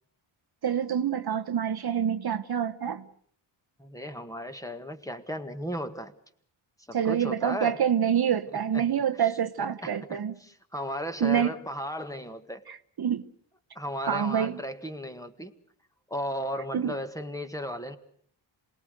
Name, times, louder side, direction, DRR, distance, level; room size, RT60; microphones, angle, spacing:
voice 1, 0.6-3.0 6.9-10.3 11.2-11.5 12.7-13.3 14.0-14.6 16.7-16.9, right 8 dB, 50° right, 1.0 m, -27 dB
voice 2, 3.8-6.1 6.9-7.8 8.7-8.9 9.2-9.3 9.6-12.6 13.7-15.6 16.1-18.0, equal, 5° left, 1.8 m, -35 dB
27.5 x 19.5 x 6.6 m
cardioid pair, 95°, 49 cm